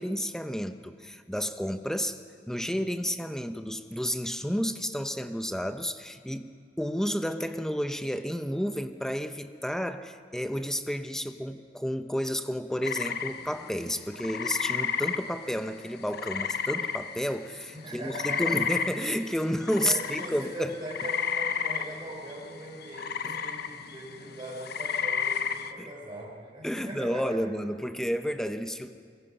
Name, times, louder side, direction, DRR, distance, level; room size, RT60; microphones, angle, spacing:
voice 1, 0.0-2.2 2.5-6.5 6.8-20.7 23.2-23.4 25.8-25.9 26.6-29.0, equal, 5° left, 8 dB, 0.8 m, -31 dB
sound 1, 12.8-17.5 17.8-25.7, left 7 dB, 60° left, 0.9 m, -32 dB
voice 2, 17.7-18.6 19.8-27.4, right 1 dB, 30° right, -5 dB, 4.5 m, -40 dB
23.5 x 21.5 x 5.5 m, 2.1 s
head